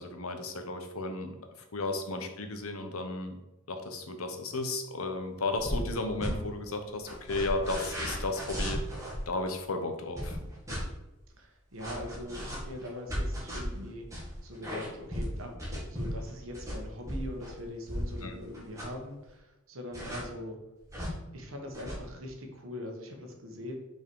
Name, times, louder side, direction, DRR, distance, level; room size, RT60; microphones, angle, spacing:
voice 1, 0.0-1.4 1.7-3.4 3.7-8.8 9.3-10.4 18.2-18.3, left 2 dB, 85° left, 6 dB, 1.0 m, -34 dB
sound 1, 5.6-5.9 6.2-6.3 7.0-9.2 10.2-10.8 11.8-18.2 18.5-19.0 19.9-20.2 20.9-21.1 21.7-22.0, equal, 15° right, 2.0 m, -36 dB
voice 2, 11.4-20.6 21.3-23.8, left 1 dB, 75° right, 3 dB, 1.4 m, -42 dB
5.8 x 4.7 x 4.7 m, 0.96 s
head